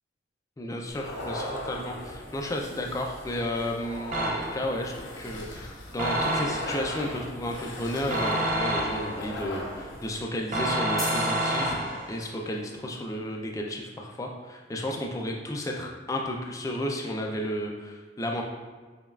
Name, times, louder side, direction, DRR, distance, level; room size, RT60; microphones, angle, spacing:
voice 1, 0.6-18.4, left 1 dB, 20° left, 0 dB, 0.3 m, -33 dB
sound 1, 0.9-10.2, left 1 dB, 85° left, 0.6 m, -39 dB
sound 2, 4.1-4.8 6.0-6.9 8.1-9.3 10.5-12.2, right 1 dB, 45° right, 0.5 m, -28 dB
sound 3, 11.0-12.6, equal, ahead, 1.0 m, -38 dB
5.2 x 2.3 x 2.3 m, 1.4 s
head